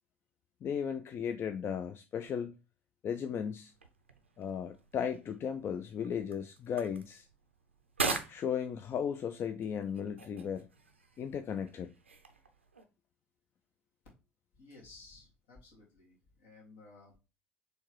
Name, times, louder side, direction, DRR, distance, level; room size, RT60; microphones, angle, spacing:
voice 1, 0.6-2.5 3.0-3.7 4.4-7.3 8.3-10.7 11.2-11.9, left 8 dB, 40° left, 0.4 m, -36 dB
sound 1, 3.7-12.8, right 4 dB, 85° right, 0.4 m, -43 dB
voice 2, 14.5-17.2, left 3 dB, 65° left, 1.9 m, -56 dB
4.5 x 3.2 x 3.0 m
figure-of-eight pair, 60°, 6 cm